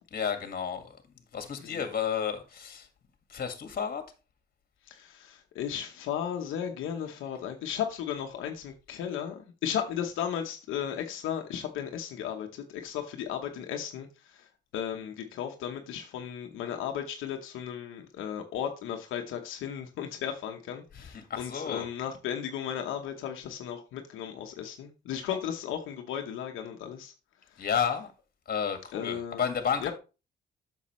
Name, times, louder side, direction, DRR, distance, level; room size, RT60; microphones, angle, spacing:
voice 1, 0.1-1.0 1.3-2.9 3.3-4.0 20.9-21.9 27.6-28.1 28.5-29.9, left 7 dB, 50° left, 1.8 m, -31 dB
voice 2, 4.9-14.4 14.7-27.1 27.6-27.7 28.9-29.4 29.8-29.9, left 9 dB, 85° left, 1.0 m, -35 dB
8.4 x 6.4 x 3.1 m
cardioid pair, 90°, 20 cm